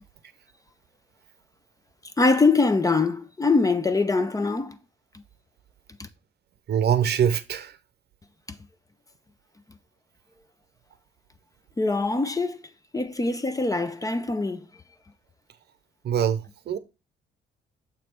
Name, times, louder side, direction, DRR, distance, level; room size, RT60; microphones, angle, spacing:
voice 1, 2.2-4.8 11.8-12.6 12.9-14.7, left 3 dB, 15° left, 0.5 m, -23 dB
voice 2, 6.7-7.7 16.0-16.8, right 8 dB, 55° right, 0.7 m, -23 dB
7.1 x 3.2 x 4.4 m
cardioid pair, 90°, 20 cm